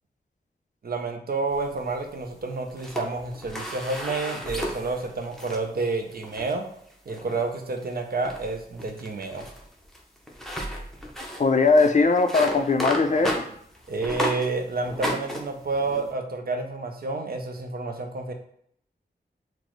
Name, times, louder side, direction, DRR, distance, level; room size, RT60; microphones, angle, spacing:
voice 1, 0.8-6.6 7.1-9.5 13.9-18.3, right 3 dB, 55° right, 4 dB, 0.6 m, -29 dB
sound 1, 1.5-2.3 2.7-5.6 6.1-6.5 7.1-7.5 7.8-7.9 8.2-14.5 14.8-16.1, equal, ahead, 0.6 m, -33 dB
voice 2, 11.4-13.3, left 3 dB, 40° left, 6 dB, 0.4 m, -20 dB
5.9 x 2.0 x 3.0 m, 0.68 s
wide cardioid pair, 100°, 19 cm